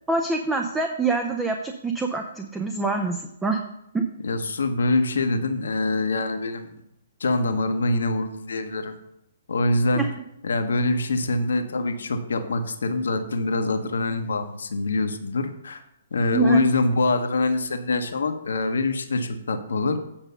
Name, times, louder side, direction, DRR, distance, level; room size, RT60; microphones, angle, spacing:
voice 1, 0.1-3.6 3.9-4.0 10.0-10.1 16.3-16.7, right 3 dB, 10° right, 4 dB, 0.7 m, -25 dB
voice 2, 4.2-6.7 7.2-8.9 9.5-10.1 10.4-15.8 16.1-20.0, left 2 dB, 75° left, 7 dB, 1.0 m, -24 dB
8.8 x 5.3 x 5.4 m, 0.81 s
hypercardioid pair, 130°, 0 cm